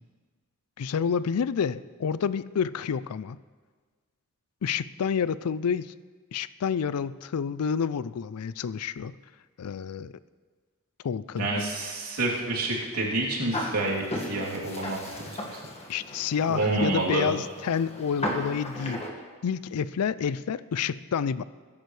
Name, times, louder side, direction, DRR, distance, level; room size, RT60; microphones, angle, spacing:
voice 1, 0.8-3.4 4.6-5.9 6.3-9.2 9.6-10.1 11.0-11.5 15.9-19.1 19.4-21.4, left 7 dB, 80° left, 17 dB, 0.4 m, -29 dB
voice 2, 11.4-15.4 16.5-17.3, right 2 dB, 85° right, -5 dB, 3.1 m, -28 dB
sound 1, 13.5-19.1, left 1 dB, 30° left, 1.7 m, -36 dB
21.5 x 10.5 x 3.3 m, 1.5 s
head